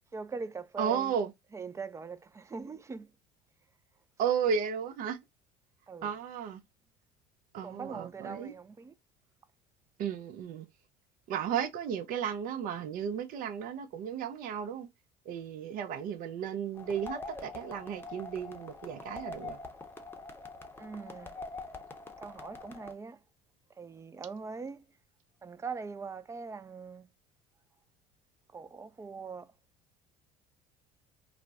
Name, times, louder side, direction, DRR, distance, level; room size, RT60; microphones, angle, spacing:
voice 1, 0.1-1.1 1.5-3.1 5.9-6.1 7.6-8.9 20.8-21.3 22.2-23.2 23.8-24.8 25.4-27.1 28.5-29.5, right 5 dB, 15° right, 0.3 m, -41 dB
voice 2, 0.8-1.3 4.2-5.2 6.0-6.6 7.5-8.5 10.0-10.7 11.3-14.9 15.3-19.6, right 7 dB, 60° right, 0.6 m, -34 dB
sound 1, 16.8-22.9, left 3 dB, 15° left, 0.7 m, -44 dB
2.4 x 2.1 x 3.4 m
hypercardioid pair, 80°, 17 cm